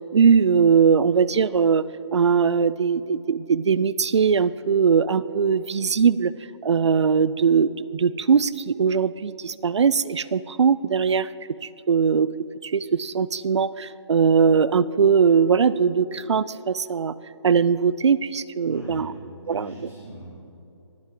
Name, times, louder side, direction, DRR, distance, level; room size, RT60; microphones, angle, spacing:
voice 1, 0.1-1.8 2.1-6.3 6.6-11.3 11.6-12.3 12.6-17.1 17.4-19.1 19.5-19.7, right 6 dB, 70° right, 18 dB, 0.4 m, -20 dB
voice 2, 18.6-20.3, equal, 5° left, -10 dB, 0.4 m, -40 dB
18.5 x 7.4 x 3.8 m, 2.8 s
hypercardioid pair, 180°, 15 cm